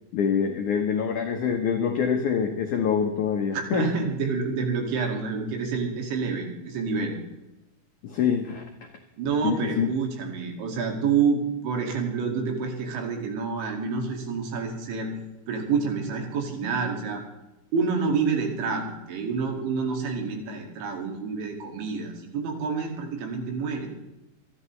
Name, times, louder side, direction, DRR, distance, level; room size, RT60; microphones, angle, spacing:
voice 1, 0.1-3.9 8.0-8.6 9.4-9.9, left 7 dB, 90° left, 3 dB, 1.7 m, -25 dB
voice 2, 3.5-7.2 9.2-15.1 15.5-17.2 17.7-23.9, right 5 dB, 80° right, 2 dB, 4.6 m, -28 dB
26.5 x 11.0 x 3.2 m, 0.94 s
omnidirectional pair, 5.2 m